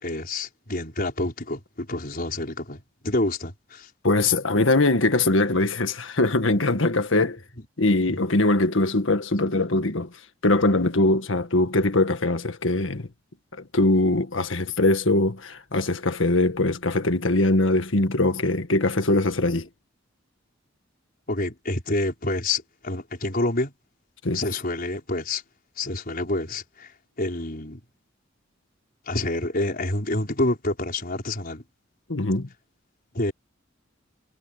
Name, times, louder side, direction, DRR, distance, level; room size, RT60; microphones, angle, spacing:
voice 1, 0.0-3.9 18.5-18.6 21.3-23.7 24.3-25.4 25.8-26.9 27.2-27.8 29.1-31.6 33.1-33.3, left 2 dB, 50° left, 5.2 m, -28 dB
voice 2, 4.0-7.4 7.8-10.1 10.4-13.1 13.6-19.7 24.2-24.4 32.1-32.5, left 2 dB, 75° left, 1.8 m, -22 dB
head